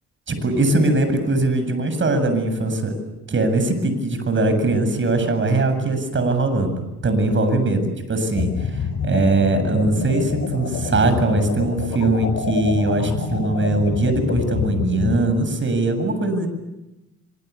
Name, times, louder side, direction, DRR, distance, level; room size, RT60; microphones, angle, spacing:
voice 1, 0.3-3.0 3.3-16.5, right 2 dB, 40° right, 9 dB, 7.7 m, -21 dB
sound 1, 8.4-15.2, left 6 dB, 65° left, 6.0 m, -27 dB
27.0 x 25.0 x 8.5 m, 0.98 s
cardioid pair, 90°, 30 cm